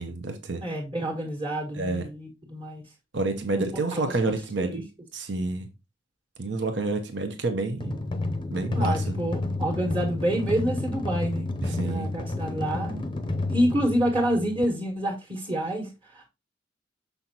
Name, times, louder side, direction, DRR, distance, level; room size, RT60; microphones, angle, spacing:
voice 1, 0.0-0.6 1.7-2.1 3.1-4.8 5.1-5.7 6.4-7.9 8.5-9.0 11.6-12.1, right 3 dB, 70° right, 0.9 m, -29 dB
voice 2, 0.6-2.8 3.5-3.6 3.9-4.1 4.6-4.8 8.7-13.0 13.5-16.3, right 1 dB, 30° right, 1.6 m, -28 dB
sound 1, 7.8-14.6, left 2 dB, 25° left, 0.6 m, -30 dB
6.7 x 5.7 x 2.9 m
head